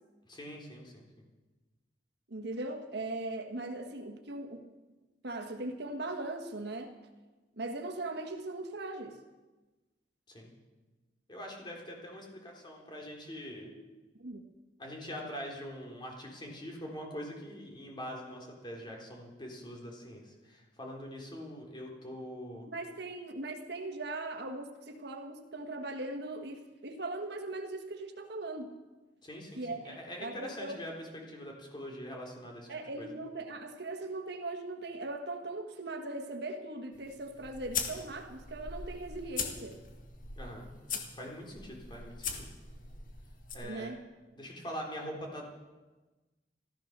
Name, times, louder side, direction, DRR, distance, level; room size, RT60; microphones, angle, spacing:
voice 1, 0.3-1.0 10.3-10.5 11.3-13.7 14.8-22.7 29.2-32.7 33.0-33.1 40.4-40.7 41.1-42.5 43.5-43.9 44.3-45.6, equal, 25° left, 0 dB, 3.8 m, -43 dB
voice 2, 2.3-4.6 5.2-6.9 7.6-9.2 13.6-13.7 14.2-14.4 22.7-28.7 29.6-30.8 32.7-39.8 43.6-44.0, right 2 dB, 65° right, 5 dB, 1.5 m, -39 dB
sound 1, 36.9-43.5, left 5 dB, 50° left, 1.9 m, -41 dB
14.5 x 14.0 x 6.6 m, 1.2 s
head